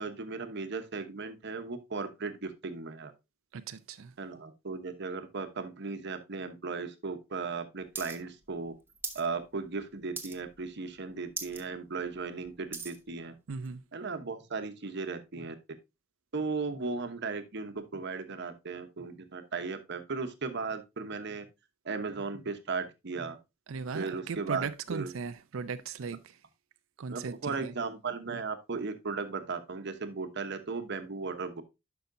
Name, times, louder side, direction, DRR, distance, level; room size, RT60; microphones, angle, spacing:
voice 1, 0.0-3.1 4.2-8.7 9.1-13.4 13.9-15.5 16.3-21.5 21.8-23.4 23.9-25.1 27.1-31.6, right 4 dB, 60° right, 1.0 m, -36 dB
voice 2, 3.5-4.1 13.5-13.8 23.7-26.4 27.0-27.7 28.3-28.4, right 5 dB, 85° right, 0.5 m, -38 dB
coin drop into coins, 8.0-8.2 8.4-9.3 9.6-9.8 10.2-10.6 11.0-11.1 11.3-11.6 12.1-13.0 13.7-13.8, right 4 dB, 10° right, 0.9 m, -39 dB
10.5 x 5.7 x 2.6 m
head